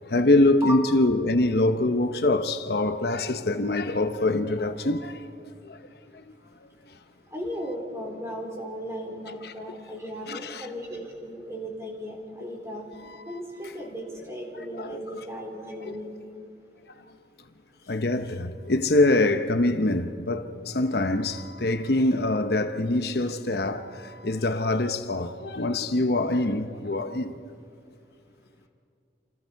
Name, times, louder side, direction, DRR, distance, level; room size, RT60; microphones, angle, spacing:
voice 1, 0.1-5.2 5.6-5.8 9.4-9.5 10.3-10.7 14.7-14.9 15.9-16.0 17.9-27.3, left 2 dB, 60° left, 0.9 m, -24 dB
voice 2, 7.3-12.8 13.3-16.2, equal, 15° right, 4.3 m, -36 dB
29.0 x 27.5 x 4.7 m
head